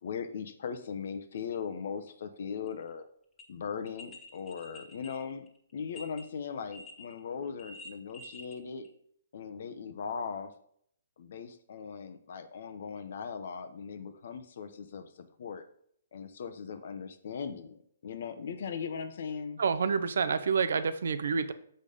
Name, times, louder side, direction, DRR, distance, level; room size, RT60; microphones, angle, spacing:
voice 1, 0.0-3.1 3.5-5.5 5.7-8.9 9.3-10.5 11.2-15.6 16.1-19.6, left 6 dB, 60° left, 9 dB, 0.9 m, -39 dB
sound 1, 2.7-2.8 3.4-3.5 3.9-6.2 6.7-7.2 7.4-8.6 8.8-8.9, left 1 dB, 10° left, 1.4 m, -48 dB
voice 2, 19.6-21.5, right 5 dB, 70° right, 12 dB, 0.6 m, -28 dB
6.7 x 5.2 x 5.2 m, 0.67 s
hypercardioid pair, 135°, 0 cm